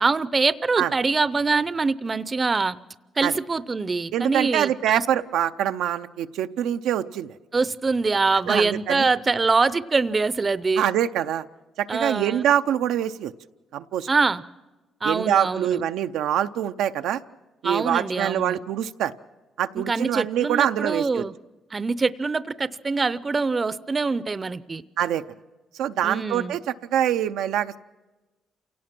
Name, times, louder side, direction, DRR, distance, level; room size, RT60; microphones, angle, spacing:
voice 1, 0.0-2.8 3.2-5.0 7.5-10.9 11.9-12.4 14.1-14.4 15.0-15.8 17.6-18.6 19.7-21.3 21.7-24.8 26.0-26.5, right 4 dB, 30° right, 16 dB, 0.7 m, -24 dB
voice 2, 4.1-7.3 8.5-9.1 10.8-11.4 11.8-13.3 13.7-14.1 15.0-17.2 17.6-19.1 19.6-21.2 25.0-25.2 25.8-27.8, right 10 dB, 90° right, 7 dB, 0.6 m, -24 dB
28.0 x 17.5 x 6.0 m, 1.1 s
cardioid pair, 90°, 0 cm